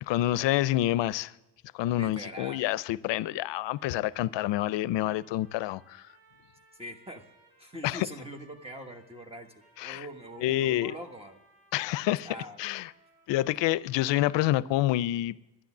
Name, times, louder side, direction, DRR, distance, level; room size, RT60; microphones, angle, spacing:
voice 1, 0.1-1.3 1.7-6.0 7.8-8.1 9.8-10.1 10.4-10.9 11.7-12.3 12.6-12.9 13.3-15.4, left 15 dB, 80° left, 0.5 m, -28 dB
voice 2, 1.9-2.6 6.7-7.2 7.6-11.4 12.2-12.6, equal, 15° right, 1.2 m, -43 dB
sound 1, 3.2-14.2, right 2 dB, 90° right, 6.1 m, -63 dB
12.0 x 10.0 x 7.2 m
cardioid pair, 110°, 43 cm